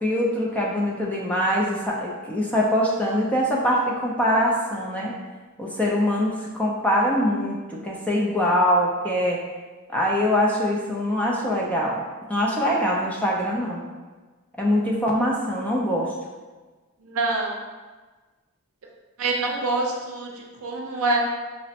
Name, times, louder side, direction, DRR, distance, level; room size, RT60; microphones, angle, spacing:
voice 1, 0.0-5.1 5.6-9.4 9.9-12.0 12.3-13.8 14.6-16.1, equal, 5° left, -3 dB, 0.4 m, -23 dB
voice 2, 17.0-17.6 19.2-21.2, right 2 dB, 70° right, 0 dB, 0.6 m, -26 dB
5.0 x 2.1 x 2.7 m, 1.3 s
head